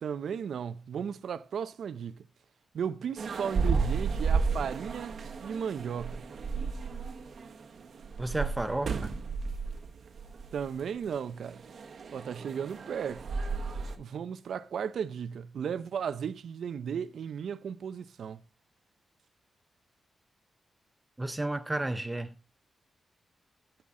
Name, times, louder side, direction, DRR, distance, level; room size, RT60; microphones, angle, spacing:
voice 1, 0.0-2.2 2.7-6.2 10.5-11.6 12.1-13.3 14.0-18.4, right 7 dB, 75° right, 0.5 m, -35 dB
sound 1, 3.2-14.0, right 4 dB, 55° right, 1.0 m, -33 dB
voice 2, 8.2-9.1 21.2-22.3, right 2 dB, 10° right, 0.6 m, -32 dB
14.5 x 5.7 x 3.7 m
wide cardioid pair, 175°, 0 cm